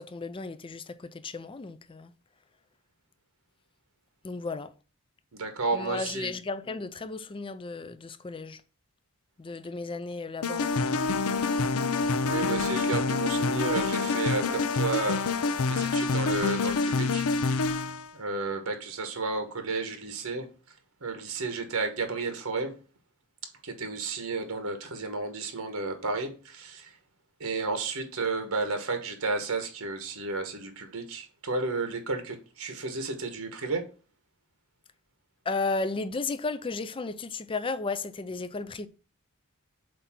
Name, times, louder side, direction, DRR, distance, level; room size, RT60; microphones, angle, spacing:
voice 1, 0.0-2.1 4.2-4.7 5.7-8.6 9.4-11.0 35.4-38.9, left 3 dB, 25° left, 0.4 m, -34 dB
voice 2, 5.3-6.3 12.2-15.4 15.6-17.2 18.1-20.5 21.0-22.7 23.6-26.9 27.4-33.9, right 3 dB, 80° right, 1.2 m, -32 dB
sound 1, 10.4-18.1, left 4 dB, 80° left, 0.5 m, -27 dB
7.7 x 2.8 x 5.9 m
head